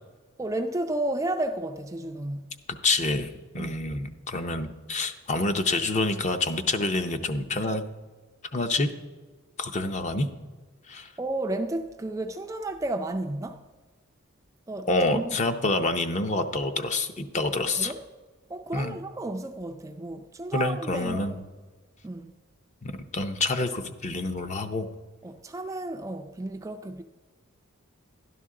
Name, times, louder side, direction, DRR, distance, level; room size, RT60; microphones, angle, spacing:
voice 1, 0.4-2.5 3.6-3.8 11.2-13.6 14.7-15.4 17.8-18.0 18.5-21.4 22.0-22.3 25.2-27.0, right 2 dB, 15° right, 0.4 m, -32 dB
voice 2, 2.8-7.8 8.5-8.9 9.6-10.3 10.9-11.1 14.9-17.9 18.7-19.0 20.5-21.4 22.8-24.9, left 2 dB, 35° left, 0.6 m, -27 dB
12.5 x 11.0 x 3.7 m
head